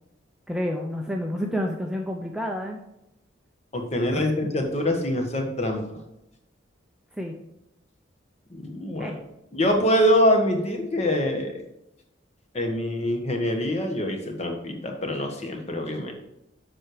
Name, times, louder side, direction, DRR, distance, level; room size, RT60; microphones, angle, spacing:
voice 1, 0.5-2.8 4.1-4.3 7.1-7.4 9.0-9.2, equal, 5° right, 1 dB, 0.7 m, -29 dB
voice 2, 3.7-6.0 8.5-9.1 9.5-11.6 12.5-16.1, equal, 35° left, 3 dB, 1.3 m, -24 dB
7.6 x 6.2 x 4.9 m, 0.86 s
head